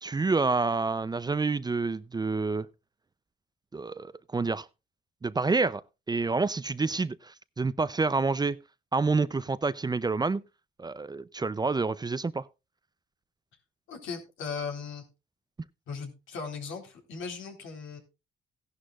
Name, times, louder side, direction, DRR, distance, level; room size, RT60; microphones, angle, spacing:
voice 1, 0.0-2.7 3.7-4.6 5.2-5.8 6.1-8.6 8.9-10.4 10.8-12.4, right 3 dB, 20° right, 0.5 m, -28 dB
voice 2, 13.9-15.0 15.9-18.0, left 5 dB, 80° left, 3.9 m, -38 dB
16.0 x 11.5 x 2.4 m
cardioid pair, 90°, 20 cm